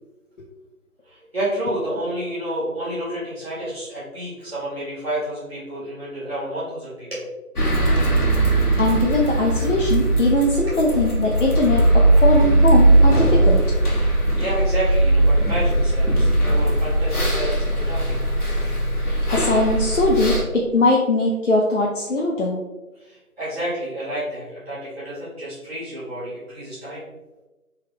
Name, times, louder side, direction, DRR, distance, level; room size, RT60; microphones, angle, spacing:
voice 1, 1.0-7.2 10.7-10.8 14.0-18.3 22.9-27.0, right 1 dB, 40° right, -10 dB, 1.4 m, -30 dB
sound 1, 7.6-20.4, right 1 dB, 80° left, 1.2 m, -19 dB
voice 2, 8.8-13.6 19.3-22.6, left 2 dB, 55° left, -2 dB, 0.5 m, -20 dB
3.3 x 2.3 x 3.2 m, 1.1 s
figure-of-eight pair, 170°, 44 cm